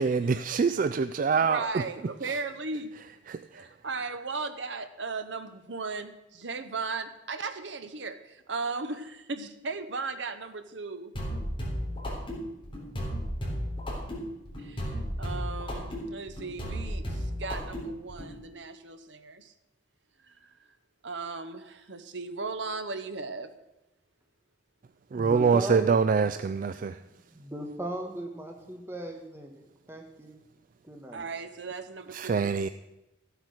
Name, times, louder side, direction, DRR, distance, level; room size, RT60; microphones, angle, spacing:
voice 1, 0.0-1.8 2.2-2.4 3.3-3.7 25.1-27.0 32.1-32.7, right 5 dB, 45° right, 0.3 m, -25 dB
voice 2, 1.4-2.9 3.5-11.1 14.6-19.5 20.2-20.5 21.0-23.5 31.1-32.5, right 4 dB, 70° right, 1.0 m, -37 dB
sound 1, 11.1-18.3, equal, 25° left, 3.6 m, -34 dB
voice 3, 25.1-25.9 26.7-26.8 27.3-30.4 30.8-31.2, right 1 dB, 15° right, 1.1 m, -38 dB
14.0 x 8.1 x 6.3 m
head